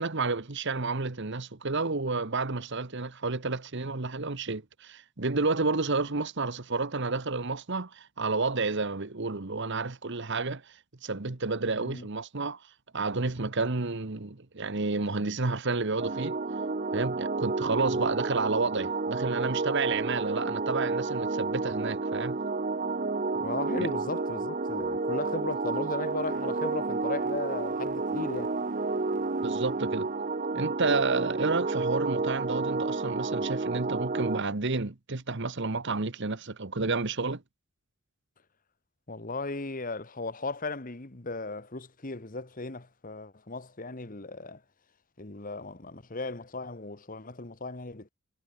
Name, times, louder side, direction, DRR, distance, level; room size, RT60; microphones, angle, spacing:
voice 1, 0.0-12.6 12.9-16.4 16.9-22.4 23.8-23.9 29.4-30.1 30.5-37.4, right 3 dB, 50° right, 1.2 m, -30 dB
voice 2, 11.7-12.1 17.9-18.1 23.4-28.6 39.1-44.6 45.2-48.1, left 3 dB, 40° left, 1.4 m, -36 dB
sound 1, 16.0-34.4, right 3 dB, 35° right, 0.7 m, -30 dB
head